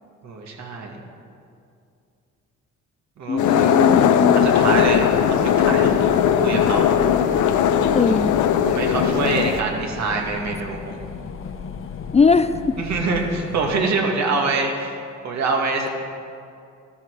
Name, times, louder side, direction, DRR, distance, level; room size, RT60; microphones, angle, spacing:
voice 1, 0.2-1.0 3.2-3.7 4.3-5.1 5.6-6.0 6.4-6.9 7.9-8.2 8.7-11.0 12.8-15.0 15.2-15.9, right 3 dB, 65° right, 1 dB, 2.2 m, -25 dB
voice 2, 3.3-4.5 7.9-8.3 12.1-12.5, left 5 dB, 20° left, 11 dB, 0.4 m, -19 dB
sound 1, 3.4-9.6, left 8 dB, 75° left, 0.8 m, -18 dB
sound 2, 4.4-13.8, left 6 dB, 45° left, 0.9 m, -35 dB
13.5 x 12.5 x 4.8 m, 2.4 s
cardioid pair, 90°, 30 cm